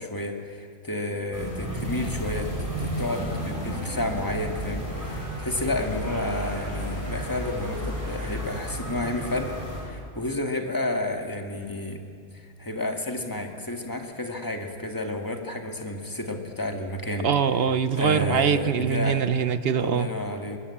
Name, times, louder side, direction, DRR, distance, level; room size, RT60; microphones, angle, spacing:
voice 1, 0.0-9.5 9.8-12.0 12.3-17.3 17.9-19.3 19.8-20.6, left 2 dB, 15° left, 3 dB, 2.1 m, -31 dB
sound 1, 1.3-9.8, right 1 dB, 15° right, 6.5 m, -32 dB
voice 2, 17.2-20.1, right 7 dB, 55° right, 13 dB, 1.0 m, -23 dB
22.0 x 21.0 x 8.6 m, 2.2 s
omnidirectional pair, 1.3 m